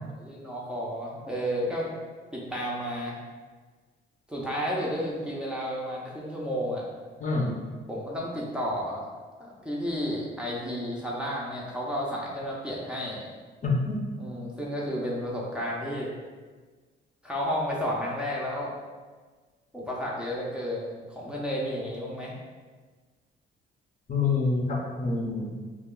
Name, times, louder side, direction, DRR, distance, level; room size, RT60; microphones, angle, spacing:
voice 1, 0.1-1.9 2.3-3.2 4.3-6.8 7.9-9.1 9.4-13.3 14.2-16.1 17.2-18.7 19.7-22.3, equal, 5° right, -5 dB, 0.6 m, -32 dB
voice 2, 7.2-7.5 13.6-14.0 24.1-25.6, left 3 dB, 40° left, -2 dB, 0.6 m, -26 dB
2.4 x 2.3 x 3.7 m, 1.4 s
cardioid pair, 90°, 20 cm